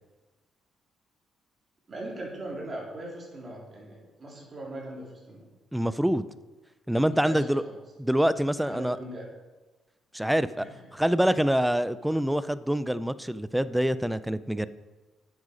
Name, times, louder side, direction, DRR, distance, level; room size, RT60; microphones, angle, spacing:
voice 1, 1.9-5.5 7.1-7.7 8.7-9.3 10.6-10.9, right 1 dB, 35° right, -3 dB, 3.5 m, -40 dB
voice 2, 5.7-6.3 6.9-7.6 8.0-9.0 10.1-10.7 10.9-14.7, equal, 5° right, 15 dB, 0.4 m, -25 dB
8.7 x 8.2 x 5.1 m, 1.2 s
cardioid pair, 90°, 0 cm